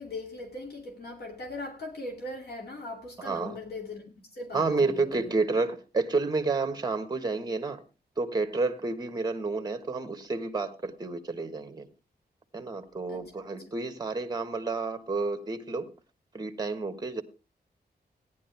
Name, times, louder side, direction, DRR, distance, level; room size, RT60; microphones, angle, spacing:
voice 1, 0.0-5.3 13.1-13.2, left 2 dB, 70° left, 2.6 m, -40 dB
voice 2, 3.2-3.6 4.5-7.8 8.2-11.9 12.5-15.9 16.3-17.2, right 3 dB, 25° right, 1.4 m, -30 dB
17.0 x 10.5 x 3.3 m
wide cardioid pair, 145°, 17 cm